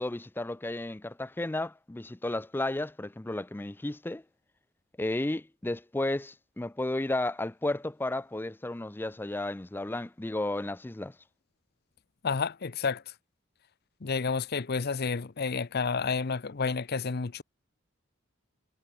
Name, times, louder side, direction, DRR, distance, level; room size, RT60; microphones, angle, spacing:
voice 1, 0.0-4.2 5.0-11.1, left 2 dB, 10° left, 0.4 m, -33 dB
voice 2, 12.2-13.1 14.0-17.4, left 5 dB, 50° left, 0.7 m, -30 dB
head